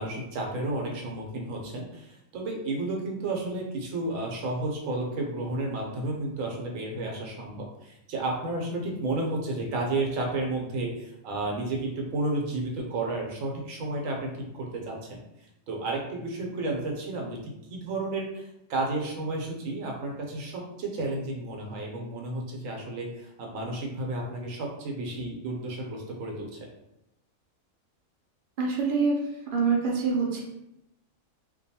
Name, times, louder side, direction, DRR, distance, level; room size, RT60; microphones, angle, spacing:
voice 1, 0.0-15.2 15.7-26.7, right 2 dB, 75° right, 0 dB, 1.0 m, -32 dB
voice 2, 28.6-29.2 29.5-30.4, right 5 dB, 55° right, -2 dB, 0.6 m, -25 dB
2.5 x 2.2 x 2.7 m, 0.85 s
omnidirectional pair, 1.4 m